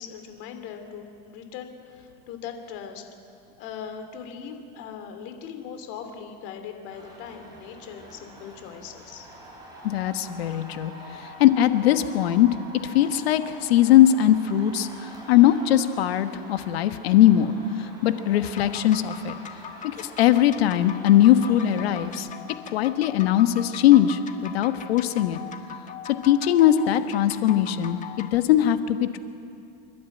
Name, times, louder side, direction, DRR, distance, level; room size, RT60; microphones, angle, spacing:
voice 1, 0.0-3.0 3.6-9.3, left 7 dB, 55° left, 6 dB, 2.8 m, -40 dB
sound 1, 6.9-22.1, right 1 dB, 15° right, 6.3 m, -45 dB
voice 2, 9.8-12.5 12.8-19.3 19.8-22.3 22.7-25.4 26.2-29.2, left 12 dB, 90° left, 10 dB, 1.3 m, -20 dB
sound 2, 18.4-28.4, left 7 dB, 25° left, 1.4 m, -41 dB
27.5 x 12.0 x 9.1 m, 2.5 s
supercardioid pair, 135°, 30 cm